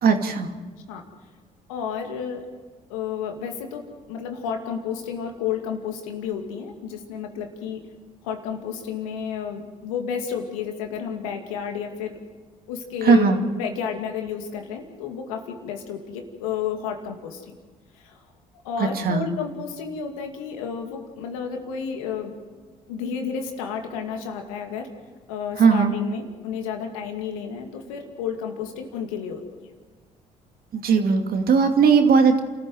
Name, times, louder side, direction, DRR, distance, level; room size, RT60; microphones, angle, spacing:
voice 1, 0.0-0.5 13.0-13.4 18.8-19.3 25.6-25.9 30.7-32.4, right 5 dB, 60° right, 5 dB, 2.5 m, -18 dB
voice 2, 1.7-2.4 2.9-3.8 4.1-7.8 8.2-12.2 12.7-17.5 17.9-18.2 18.6-22.3 22.9-24.9 25.3-29.4, left 7 dB, 90° left, 4 dB, 2.4 m, -31 dB
28.5 x 14.0 x 7.8 m, 1.5 s
hypercardioid pair, 55°, 17 cm